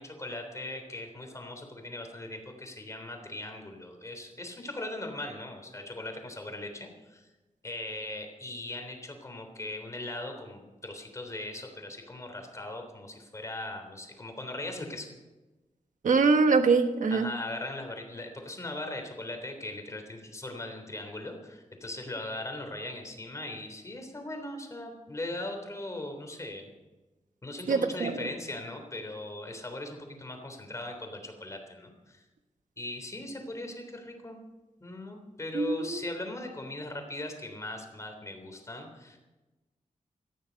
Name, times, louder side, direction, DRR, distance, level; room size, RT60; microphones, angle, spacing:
voice 1, 0.0-7.3 7.6-15.1 17.1-26.7 27.4-32.2 32.8-34.4 34.8-39.2, left 2 dB, 25° left, 4 dB, 3.4 m, -39 dB
voice 2, 16.0-17.3 27.7-28.1 35.5-36.0, right 4 dB, 75° right, 7 dB, 1.4 m, -23 dB
18.5 x 14.0 x 5.3 m, 1.1 s
wide cardioid pair, 150°, 13 cm